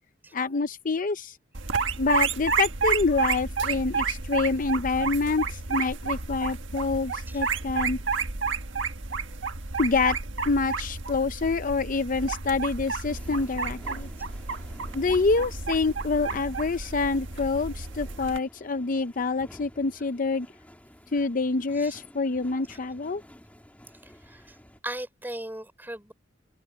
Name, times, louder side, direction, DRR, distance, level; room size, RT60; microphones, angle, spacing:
voice 1, 0.3-1.4 2.0-8.0 9.8-10.2 10.4-14.1 14.9-20.5 21.1-23.2, left 4 dB, 45° left, 0.6 m, -26 dB
sound 1, 1.5-18.4, right 5 dB, 85° right, 1.5 m, -31 dB
sound 2, 13.1-24.8, equal, 10° left, 2.7 m, -51 dB
voice 2, 24.0-24.6 24.8-26.1, right 1 dB, 10° right, 5.1 m, -39 dB
head